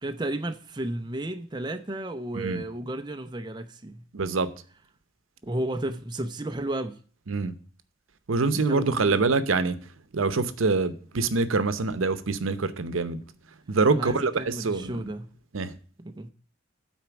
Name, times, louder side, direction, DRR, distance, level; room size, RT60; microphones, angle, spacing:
voice 1, 0.0-4.0 5.4-7.0 8.5-9.2 13.9-15.3 16.0-16.3, right 1 dB, 20° right, 0.6 m, -33 dB
voice 2, 4.1-4.5 7.3-7.5 8.3-9.8 10.1-13.2 13.7-15.0 15.5-15.7, right 3 dB, 85° right, 0.8 m, -25 dB
9.2 x 4.4 x 7.0 m
head